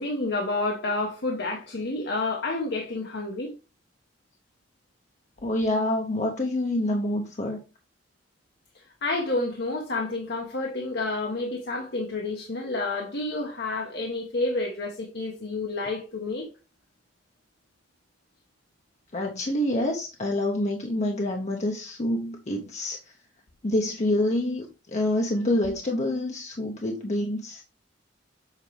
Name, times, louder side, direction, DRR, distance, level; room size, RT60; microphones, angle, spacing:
voice 1, 0.0-3.5 9.0-16.5, left 2 dB, 65° left, 1.1 m, -29 dB
voice 2, 5.4-7.6 19.1-23.0 23.6-27.6, left 1 dB, 40° left, 0.8 m, -27 dB
7.4 x 4.4 x 3.3 m
head